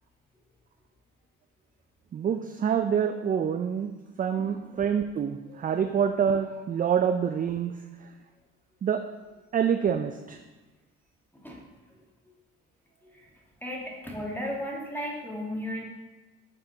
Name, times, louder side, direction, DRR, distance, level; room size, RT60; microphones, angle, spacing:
voice 1, 2.1-3.9 4.2-7.7 8.8-9.0 9.5-10.4, right 7 dB, 25° right, 7 dB, 0.4 m, -26 dB
voice 2, 4.4-4.8 5.6-5.7 10.3-10.4 11.3-11.6 11.9-12.0 13.0-13.3 13.6-15.8, equal, 5° left, -2 dB, 1.7 m, -36 dB
7.1 x 4.3 x 3.9 m, 1.2 s
supercardioid pair, 70°, 32 cm